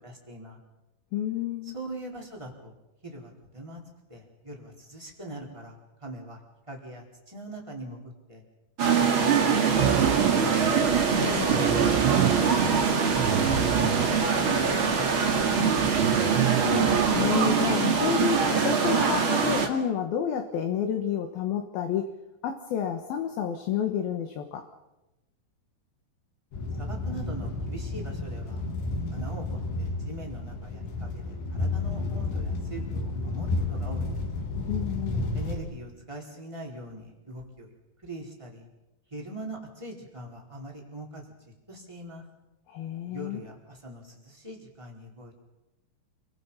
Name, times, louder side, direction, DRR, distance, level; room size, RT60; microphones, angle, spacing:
voice 1, 0.0-0.6 1.6-2.7 3.0-3.8 4.1-6.4 6.7-8.4 9.0-10.6 11.9-15.1 15.9-16.0 26.8-28.6 29.1-34.2 35.3-37.7 38.0-38.7 39.1-41.2 41.7-42.2 43.1-45.4, right 1 dB, 5° right, -1 dB, 4.4 m, -41 dB
voice 2, 1.1-1.8 11.1-11.5 16.5-22.1 22.4-24.6 34.7-35.3 42.7-43.4, left 9 dB, 65° left, 5 dB, 2.9 m, -30 dB
sound 1, 8.8-19.7, right 6 dB, 40° right, 2.3 m, -23 dB
sound 2, 9.8-17.5, right 10 dB, 90° right, 3.5 m, -29 dB
sound 3, 26.5-35.6, left 2 dB, 85° left, 5.5 m, -31 dB
29.0 x 24.5 x 5.7 m, 0.99 s
omnidirectional pair, 5.0 m